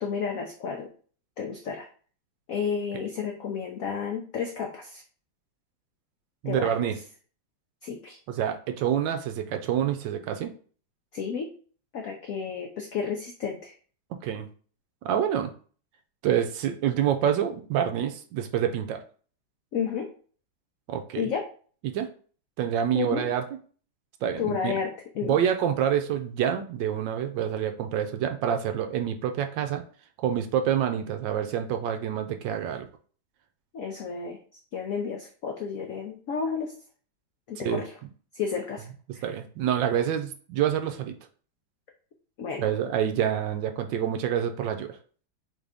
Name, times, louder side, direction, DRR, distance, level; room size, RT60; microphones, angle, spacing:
voice 1, 0.0-0.9 1.4-1.9 2.5-5.0 6.4-6.9 7.8-8.2 11.1-11.5 11.9-13.7 19.7-20.1 21.2-21.4 22.9-23.3 24.4-25.4 33.7-34.4 34.7-36.7 37.5-37.9 38.3-38.9 39.1-39.3 42.4-42.7, left 6 dB, 85° left, 2 dB, 0.7 m, -31 dB
voice 2, 6.4-7.0 8.3-10.5 14.2-14.5 15.0-15.5 16.2-19.0 20.9-21.3 21.8-22.1 22.6-23.4 24.2-24.8 25.2-29.8 30.2-32.9 37.6-37.8 39.2-41.1 42.6-45.0, right 9 dB, 75° right, 7 dB, 1.2 m, -27 dB
3.9 x 3.7 x 3.4 m, 0.42 s
omnidirectional pair, 2.2 m